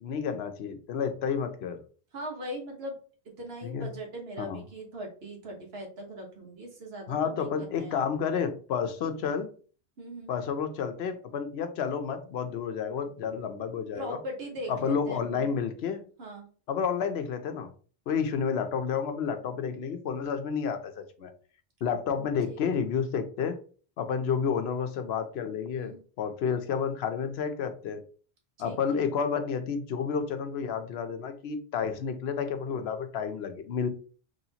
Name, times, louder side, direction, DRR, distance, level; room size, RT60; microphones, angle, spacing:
voice 1, 0.0-1.8 3.6-3.9 4.4-4.6 7.1-9.5 10.3-14.2 14.7-16.0 16.7-17.7 18.1-21.3 21.8-23.6 24.0-28.0 28.6-33.9, left 6 dB, 75° left, 8 dB, 0.9 m, -30 dB
voice 2, 2.1-2.9 3.4-8.0 9.1-9.3 10.0-10.3 13.9-15.5 16.2-16.5 22.5-22.6 25.7-26.0 28.6-29.1, right 1 dB, 70° right, 1 dB, 1.4 m, -40 dB
4.1 x 3.1 x 2.8 m, 0.40 s
omnidirectional pair, 1.1 m